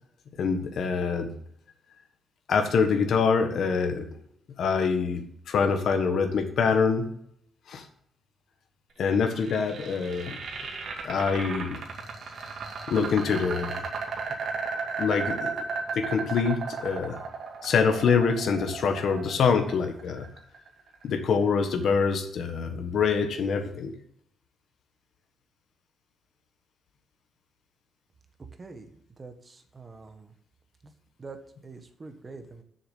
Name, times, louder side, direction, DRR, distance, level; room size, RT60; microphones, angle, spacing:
voice 1, 0.4-1.3 2.5-4.1 4.6-7.1 7.7-7.8 9.0-10.4 11.0-11.8 12.9-13.8 15.0-15.6 15.9-17.2 17.6-20.3 21.0-23.9, left 5 dB, 65° left, 5 dB, 1.4 m, -25 dB
sound 1, 9.1-21.1, right 5 dB, 60° right, 2.3 m, -35 dB
voice 2, 28.6-30.3 31.2-32.6, right 3 dB, 25° right, 7 dB, 1.4 m, -45 dB
7.1 x 6.9 x 7.9 m, 0.68 s
cardioid pair, 140°, 0 cm